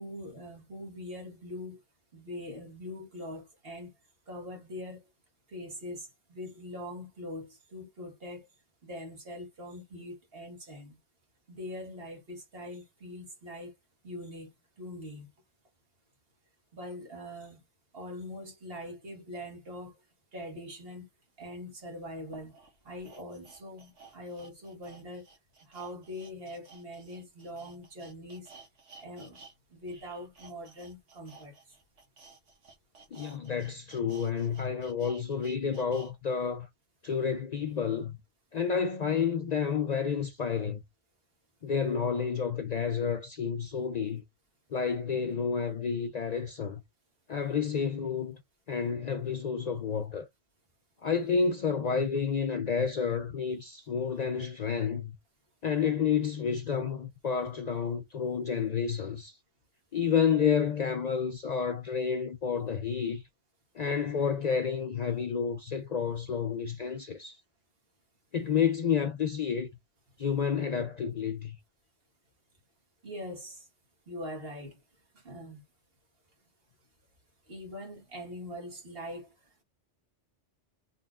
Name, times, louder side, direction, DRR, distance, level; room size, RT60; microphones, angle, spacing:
voice 1, 0.0-1.8 2.1-3.9 4.3-5.0 5.5-8.5 8.8-11.0 11.5-13.7 14.0-15.3 16.7-17.6 17.9-19.9 20.3-21.1 21.4-22.5 22.8-25.2 25.6-28.5 29.0-29.4 29.7-31.7 73.0-73.7 74.1-74.8 75.1-75.6 77.5-79.3, left 1 dB, 55° right, 1.7 m, -42 dB
sound 1, 21.4-21.5 22.2-29.5 29.8-36.1 36.5-36.6, right 4 dB, 90° right, 1.5 m, -54 dB
voice 2, 33.1-36.7 37.0-38.2 38.5-40.8 41.6-44.2 44.7-46.8 47.3-48.4 48.7-50.3 51.0-55.1 55.6-59.4 59.9-63.2 63.7-67.4 68.3-69.7 70.2-71.6, left 6 dB, 60° left, 0.4 m, -30 dB
4.0 x 3.3 x 2.3 m
omnidirectional pair, 1.2 m